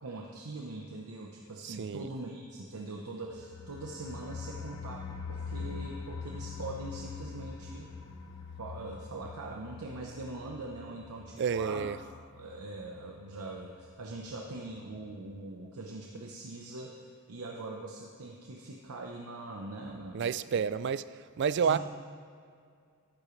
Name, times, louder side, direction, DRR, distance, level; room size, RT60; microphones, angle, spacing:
voice 1, 0.0-7.9 8.6-11.9 12.3-20.6 21.6-21.8, right 2 dB, 90° right, 0 dB, 0.9 m, -42 dB
voice 2, 1.6-2.1 11.4-12.0 20.1-21.8, right 6 dB, 50° right, 15 dB, 0.3 m, -30 dB
sound 1, 3.3-14.0 14.3-14.4 14.7-14.8, left 5 dB, 80° left, 0.9 m, -44 dB
13.5 x 12.0 x 3.2 m, 2.2 s
head